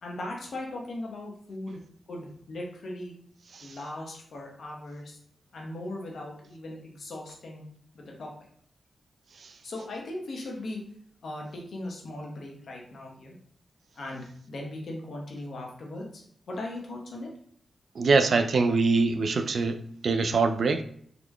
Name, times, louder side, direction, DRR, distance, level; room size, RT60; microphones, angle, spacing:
voice 1, 0.0-1.8 2.1-3.1 3.6-5.2 5.5-7.6 7.9-8.3 9.6-10.8 11.2-13.4 14.0-17.3, left 1 dB, 75° left, 0.9 m, -38 dB
voice 2, 18.0-20.8, right 4 dB, 65° right, 0.3 m, -23 dB
3.8 x 3.1 x 2.2 m
cardioid pair, 45°, 0 cm